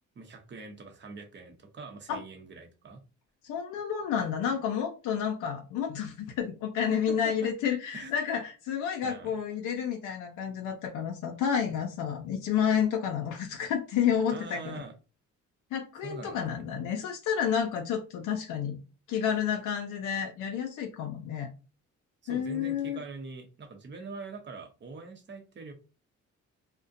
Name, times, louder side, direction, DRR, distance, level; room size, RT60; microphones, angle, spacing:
voice 1, 0.2-3.0 6.9-7.3 7.9-8.1 9.0-9.4 14.3-14.9 16.0-16.6 22.2-25.7, right 4 dB, 40° right, 5 dB, 0.7 m, -43 dB
voice 2, 3.4-14.8 15.7-18.8 19.1-21.5 22.3-23.0, left 8 dB, 85° left, 2 dB, 0.5 m, -30 dB
2.4 x 2.1 x 2.5 m, 0.33 s
cardioid pair, 90°, 30 cm